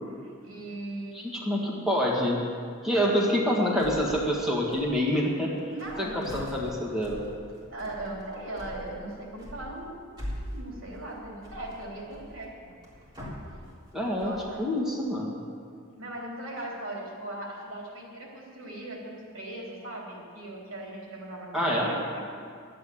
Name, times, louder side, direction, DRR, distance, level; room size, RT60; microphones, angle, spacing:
voice 1, 0.2-1.8 2.9-3.1 5.7-6.2 7.7-12.5 14.2-14.6 16.0-22.2, right 1 dB, 75° right, -2 dB, 3.5 m, -39 dB
voice 2, 1.1-2.4 2.8-5.5 6.0-7.2 13.9-14.3 14.6-15.4 21.5-21.9, equal, 5° right, -4 dB, 1.8 m, -26 dB
sound 1, 3.8-4.4 4.6-5.3 5.6-14.6, equal, 20° right, 3.7 m, -42 dB
11.5 x 8.7 x 8.7 m, 2.2 s
head